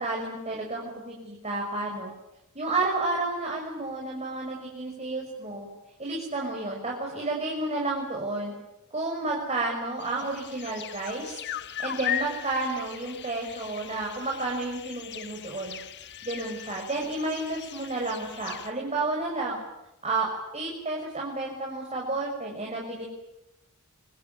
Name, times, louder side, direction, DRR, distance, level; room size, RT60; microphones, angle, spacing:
voice 1, 0.0-2.1 2.5-5.7 6.0-8.5 8.9-11.4 11.8-15.8 16.2-19.6 20.0-20.3 20.5-23.1, right 2 dB, 30° right, -1 dB, 6.0 m, -31 dB
sound 1, 10.0-18.7, left 10 dB, 50° left, 1.5 m, -38 dB
25.0 x 25.0 x 9.4 m, 0.93 s
head